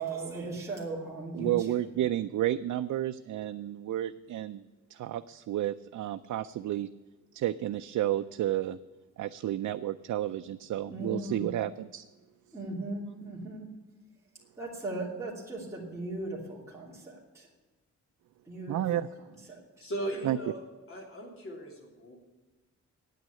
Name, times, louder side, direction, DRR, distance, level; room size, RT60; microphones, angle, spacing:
voice 1, 0.0-1.5 10.9-11.5 12.5-13.7 14.6-17.5 18.5-18.8 19.5-19.6, right 2 dB, 10° right, -6 dB, 2.8 m, -37 dB
voice 2, 1.3-4.6 4.9-6.9 7.3-8.8 9.2-12.1 13.1-13.2 18.7-19.1 20.2-20.4, right 13 dB, 85° right, 9 dB, 0.5 m, -31 dB
voice 3, 19.8-20.6 20.9-22.2, right 1 dB, 50° left, 0 dB, 3.2 m, -37 dB
9.3 x 9.2 x 9.7 m, 1.2 s
wide cardioid pair, 175°, 29 cm